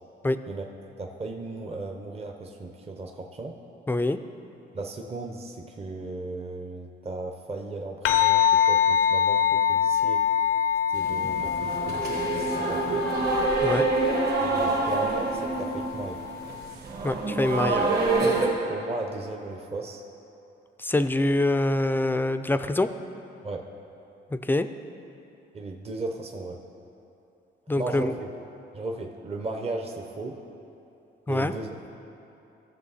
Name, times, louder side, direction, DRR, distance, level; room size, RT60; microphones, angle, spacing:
voice 1, 1.0-3.6 4.7-10.3 10.9-13.1 14.4-16.2 18.7-20.0 23.4-23.7 25.5-26.6 27.8-28.3 28.7-30.4 31.3-31.7, right 2 dB, 30° right, 3 dB, 0.8 m, -36 dB
voice 2, 3.9-4.2 13.6-13.8 17.0-17.9 20.8-22.9 24.3-24.7 27.7-28.1 31.3-31.5, left 2 dB, 10° left, 10 dB, 0.4 m, -25 dB
sound 1, 8.1-16.7, left 9 dB, 85° left, 0.7 m, -25 dB
sound 2, 10.9-18.5, right 3 dB, 55° right, 1.8 m, -26 dB
15.0 x 6.5 x 4.2 m, 2.9 s
cardioid pair, 90°, 20 cm